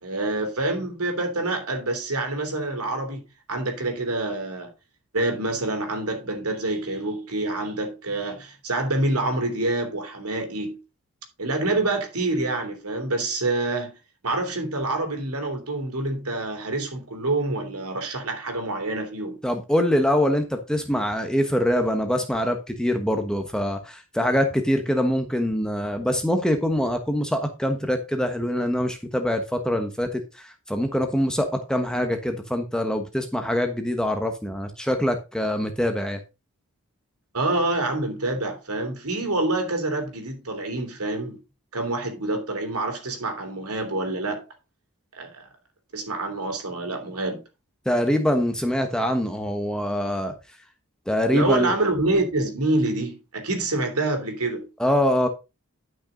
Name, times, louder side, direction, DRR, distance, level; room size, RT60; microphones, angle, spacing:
voice 1, 0.0-3.2 3.5-4.7 5.1-10.8 11.4-14.0 14.2-19.4 37.3-41.4 41.7-44.4 45.1-45.5 45.9-47.4 51.3-54.7, right 2 dB, 90° right, 3.2 m, -27 dB
voice 2, 19.4-36.2 47.8-50.3 51.1-51.7 54.8-55.3, equal, 5° left, 1.2 m, -24 dB
11.5 x 6.1 x 3.9 m
head